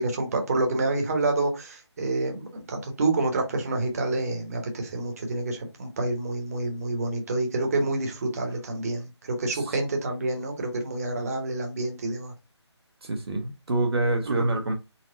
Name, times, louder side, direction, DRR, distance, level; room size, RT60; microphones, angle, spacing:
voice 1, 0.0-12.3 14.2-14.5, right 2 dB, 30° right, 1.0 m, -28 dB
voice 2, 13.0-14.7, right 2 dB, 60° right, 0.8 m, -26 dB
4.1 x 2.0 x 3.9 m
figure-of-eight pair, 165°, 15 cm